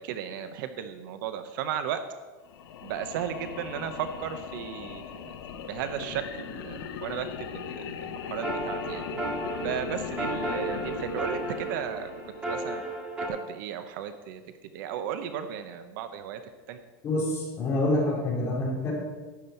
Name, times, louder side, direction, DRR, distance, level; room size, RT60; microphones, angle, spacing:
voice 1, 0.0-2.0 2.8-9.0 9.6-12.1 12.4-12.8 13.3-14.4 14.7-16.4 16.7-16.8, right 9 dB, 60° right, 9 dB, 0.7 m, -35 dB
sound 1, 2.4-12.8, left 8 dB, 90° left, 1.0 m, -39 dB
sound 2, 8.2-13.3, right 2 dB, 10° right, 1.8 m, -34 dB
voice 2, 17.0-18.9, left 1 dB, 20° left, -5 dB, 3.5 m, -27 dB
12.5 x 9.4 x 4.4 m, 1.3 s
supercardioid pair, 180°, 12 cm